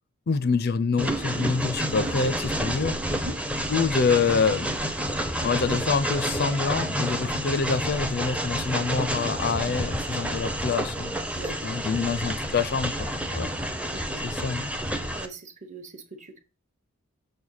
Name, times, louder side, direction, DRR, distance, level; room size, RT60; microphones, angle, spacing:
voice 1, 0.3-3.1 3.7-4.8 5.4-11.4 11.6-13.5 14.2-14.8, left 5 dB, 45° left, 0.4 m, -26 dB
Train, 1.0-15.3, equal, 5° right, 0.5 m, -29 dB
voice 2, 11.4-11.7 13.3-13.5 13.9-14.2 15.1-16.4, right 2 dB, 35° right, 0.9 m, -40 dB
6.6 x 3.3 x 5.5 m
head